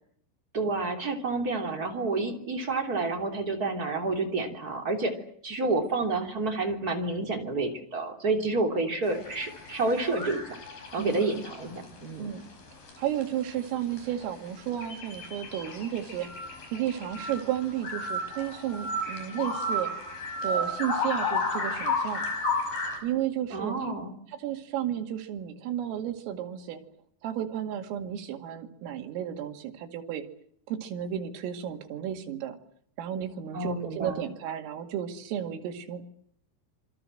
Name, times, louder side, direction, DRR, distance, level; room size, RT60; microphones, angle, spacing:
voice 1, 0.5-5.1 5.4-10.4 10.9-12.3 23.5-24.1 33.5-34.2, right 3 dB, 25° right, 3 dB, 2.5 m, -29 dB
sound 1, 9.1-11.9 12.2-12.3 12.7-12.9 13.2-13.3 13.5-13.6 13.9-23.0, left 2 dB, 45° left, 6.6 m, -33 dB
voice 2, 13.0-16.3 16.7-19.9 20.4-22.2 23.0-23.9 24.3-26.8 27.2-30.2 30.7-32.6 33.0-36.0, right 10 dB, 80° right, 6 dB, 4.8 m, -33 dB
26.5 x 23.5 x 7.8 m, 0.67 s
omnidirectional pair, 5.8 m